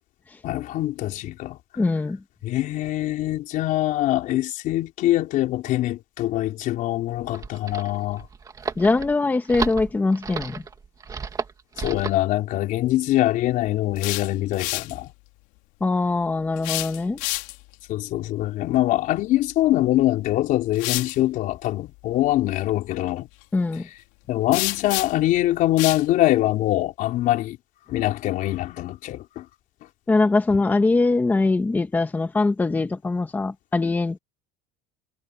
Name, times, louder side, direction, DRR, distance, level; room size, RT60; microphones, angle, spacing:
voice 1, 0.4-1.6 2.4-8.3 11.8-15.1 17.9-23.3 24.3-27.6 27.9-29.5, left 15 dB, 45° left, 4.2 m, -23 dB
voice 2, 1.8-2.2 8.8-10.6 15.8-17.2 23.5-23.9 30.1-34.2, left 3 dB, 10° left, 1.4 m, -22 dB
sound 1, 7.1-12.2, right 5 dB, 20° right, 2.2 m, -33 dB
sound 2, 13.8-15.0 16.6-17.7 19.8-19.9 20.7-21.2 24.5-25.3 25.8-26.1, left 23 dB, 65° left, 3.7 m, -29 dB
cardioid pair, 165°, 20 cm